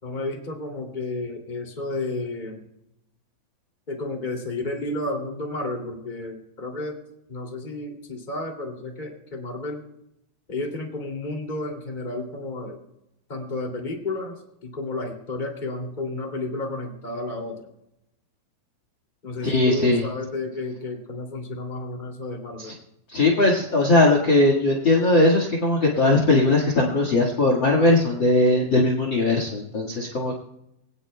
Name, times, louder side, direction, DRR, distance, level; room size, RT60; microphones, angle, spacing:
voice 1, 0.0-2.6 3.9-7.0 7.3-9.8 10.5-12.8 13.3-14.3 14.6-17.6 19.2-22.7, left 2 dB, 15° left, 1 dB, 1.6 m, -32 dB
voice 2, 19.4-20.0 22.6-22.7 23.1-30.4, left 2 dB, 55° left, 1 dB, 1.2 m, -19 dB
24.0 x 17.5 x 2.3 m, 0.83 s
omnidirectional pair, 5.2 m